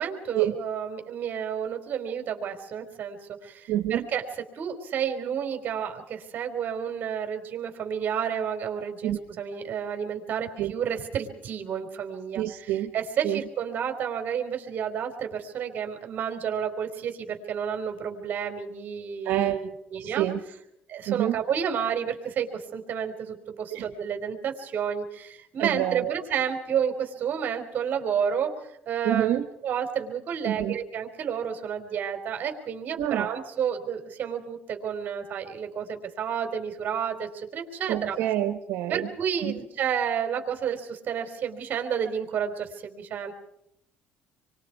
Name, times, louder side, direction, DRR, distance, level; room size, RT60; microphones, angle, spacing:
voice 1, 0.0-3.2 3.4-4.3 4.5-20.3 20.9-38.2 38.9-43.3, right 8 dB, 55° right, 5 dB, 4.3 m, -31 dB
voice 2, 3.7-4.1 9.0-9.2 10.6-10.7 12.3-12.9 13.2-13.4 19.2-19.7 20.0-20.4 21.1-21.4 23.7-23.9 25.6-26.1 29.0-29.4 30.4-30.7 33.0-33.4 37.9-39.1 39.4-39.5, right 13 dB, 85° right, 7 dB, 1.3 m, -27 dB
28.0 x 24.0 x 4.8 m, 0.79 s
cardioid pair, 105°, 4 cm